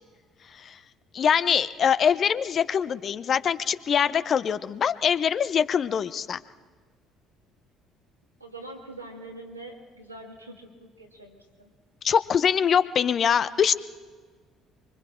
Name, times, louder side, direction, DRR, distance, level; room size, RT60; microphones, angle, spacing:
voice 1, 1.1-6.4 12.0-13.7, left 7 dB, 45° left, 14 dB, 0.8 m, -23 dB
voice 2, 8.4-11.7, right 2 dB, 90° right, 0 dB, 2.3 m, -44 dB
25.0 x 24.5 x 4.5 m, 1.5 s
figure-of-eight pair, 55°, 0 cm